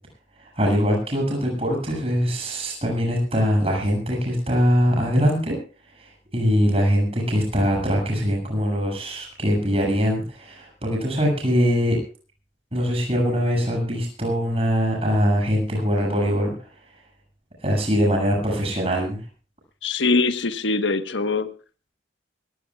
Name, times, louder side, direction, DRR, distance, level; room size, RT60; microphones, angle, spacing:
voice 1, 0.6-5.6 6.0-12.0 12.7-16.5 17.6-19.2, equal, 30° right, 0 dB, 7.2 m, -22 dB
voice 2, 19.8-21.5, left 3 dB, 85° left, 9 dB, 1.3 m, -22 dB
24.0 x 17.0 x 2.4 m, 0.37 s
head